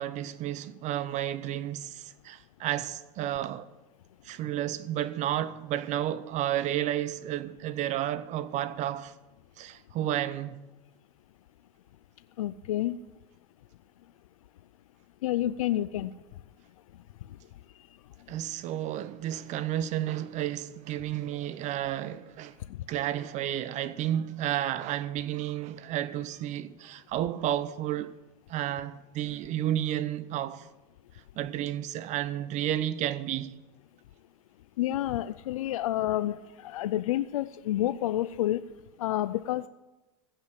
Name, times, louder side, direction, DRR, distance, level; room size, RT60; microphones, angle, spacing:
voice 1, 0.0-3.7 4.2-9.2 9.6-10.7 18.3-22.6 22.9-28.1 28.5-30.7 31.4-33.6, right 12 dB, 45° right, 0.7 m, -32 dB
voice 2, 12.4-13.0 15.2-16.1 17.2-17.4 17.7-17.9 22.6-22.9 34.8-38.6 39.0-39.7, left 13 dB, 90° left, 0.4 m, -29 dB
15.5 x 5.6 x 9.9 m
supercardioid pair, 110°, 17 cm